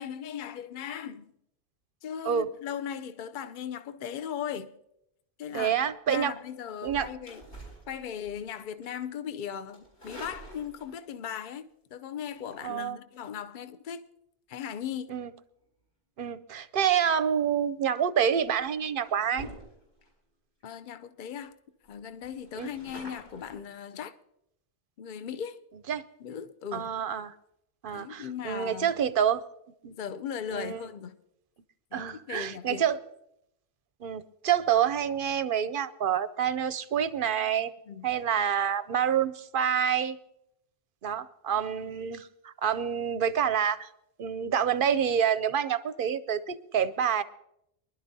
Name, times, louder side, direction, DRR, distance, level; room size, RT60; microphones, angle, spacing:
voice 1, 0.0-1.3 2.0-4.8 5.4-5.7 6.1-7.4 7.9-14.0 14.5-15.2 20.6-21.5 21.9-24.2 25.0-25.6 26.2-26.9 27.9-28.9 29.9-31.2 31.9-32.9 37.9-38.1, left 8 dB, 50° left, 0.7 m, -38 dB
voice 2, 5.5-6.3 6.8-7.1 12.6-13.0 15.1-15.3 16.2-19.5 22.6-22.7 25.9-26.0 26.7-27.3 27.8-29.4 29.8-29.9 30.5-30.8 31.9-33.0 34.0-37.7 38.0-40.2 41.0-43.9 44.2-47.2, right 8 dB, 60° right, 0.7 m, -27 dB
sound 1, 6.8-8.5 8.8-9.1 9.7-11.1 12.4-12.7 17.7-18.0 18.5-18.6 19.0-20.1 20.6-20.7 21.0-21.1 21.4-21.5 21.8-23.6, right 1 dB, 75° left, 5.2 m, -47 dB
23.5 x 11.5 x 2.7 m
omnidirectional pair, 1.2 m